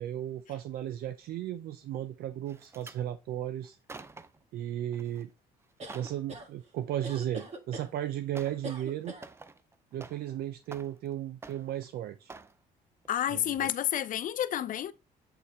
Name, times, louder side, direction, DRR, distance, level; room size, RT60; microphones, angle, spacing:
voice 1, 0.0-3.8 4.5-5.3 5.9-9.1 9.9-12.3 13.3-13.7, right 11 dB, 65° right, 0.5 m, -35 dB
sound 1, 2.5-3.0 3.6-4.4 4.9-5.2 5.6-6.2 7.5-7.6 8.3-8.7 9.0-10.4 10.6-11.1 11.4-11.9 12.3-12.6 13.0-13.2 13.6-13.7, right 3 dB, 15° right, 0.4 m, -49 dB
sound 2, 5.8-6.5 7.0-7.9 8.6-9.3, right 2 dB, 40° right, 1.7 m, -41 dB
voice 2, 13.1-14.9, left 11 dB, 55° left, 0.6 m, -30 dB
8.1 x 3.3 x 4.2 m
cardioid pair, 110°, 17 cm